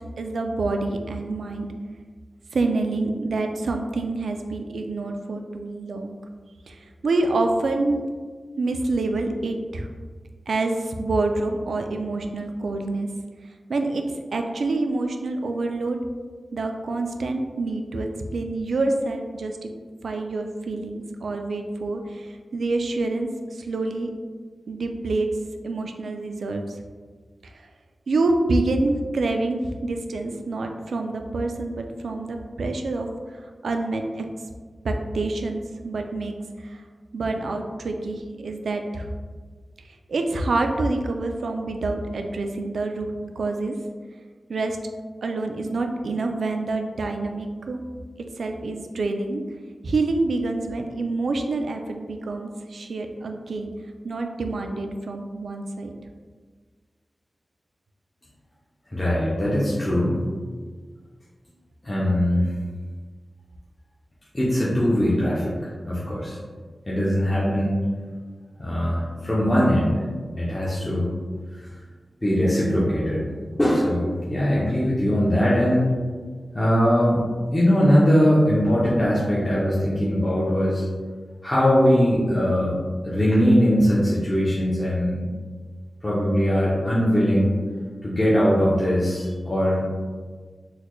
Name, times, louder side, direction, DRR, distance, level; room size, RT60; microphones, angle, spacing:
voice 1, 0.2-1.7 2.5-6.2 6.7-8.0 8.6-9.9 10.5-13.1 13.7-14.0 14.3-16.0 16.5-19.7 20.0-24.1 24.7-25.3 25.6-26.8 27.4-27.5 28.1-33.1 33.6-34.3 34.8-36.8 37.1-39.1 40.1-43.7 44.5-44.8 45.2-47.8 48.4-49.4 49.8-53.7 54.0-55.9, right 2 dB, 85° right, 4 dB, 0.3 m, -27 dB
voice 2, 58.9-60.2 61.8-62.5 64.3-65.5 65.9-66.4 66.9-67.8 68.6-70.0 70.4-71.1 72.2-73.2 73.6-75.9 76.5-77.2 77.5-80.9 81.4-82.8 83.0-85.2 86.0-87.6 88.0-89.8, equal, 15° left, -8 dB, 0.6 m, -21 dB
4.0 x 2.2 x 3.1 m, 1.5 s
wide cardioid pair, 125°, 0 cm